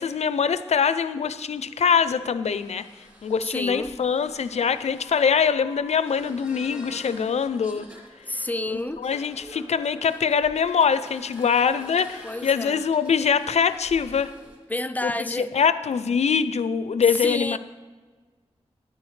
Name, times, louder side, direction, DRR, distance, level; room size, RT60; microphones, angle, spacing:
voice 1, 0.0-2.8 3.2-7.9 8.7-14.3 15.0-17.6, left 6 dB, 80° left, 13 dB, 0.4 m, -23 dB
sound 1, 0.8-14.6, left 1 dB, 20° right, 3.6 m, -48 dB
voice 2, 3.4-3.9 8.3-9.0 12.2-12.9 14.7-15.5 17.1-17.6, left 1 dB, 15° left, 11 dB, 0.4 m, -29 dB
12.0 x 9.9 x 3.2 m, 1.4 s
wide cardioid pair, 95°, 11 cm